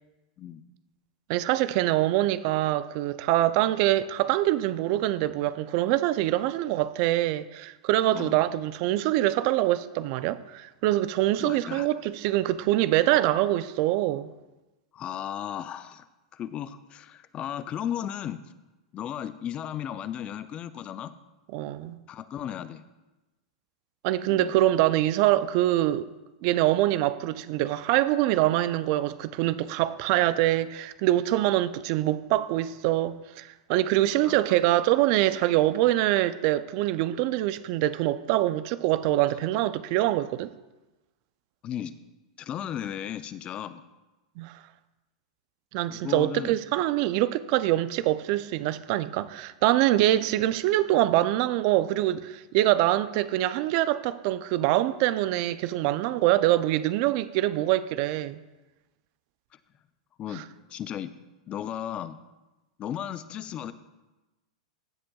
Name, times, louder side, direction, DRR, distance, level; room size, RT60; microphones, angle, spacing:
voice 1, 1.3-14.3 21.5-22.0 24.0-26.1 26.4-40.5 44.4-44.6 45.7-58.4 60.3-60.4, right 15 dB, 50° right, 0.4 m, -24 dB
voice 2, 11.4-11.9 14.9-16.0 16.3-18.4 18.9-21.1 22.1-22.8 24.2-24.5 34.0-34.4 41.6-41.9 42.4-43.8 45.9-46.6 60.2-61.1 61.5-62.2 62.8-63.7, left 10 dB, 30° left, 0.5 m, -35 dB
15.0 x 7.6 x 2.3 m
hypercardioid pair, 125°, 4 cm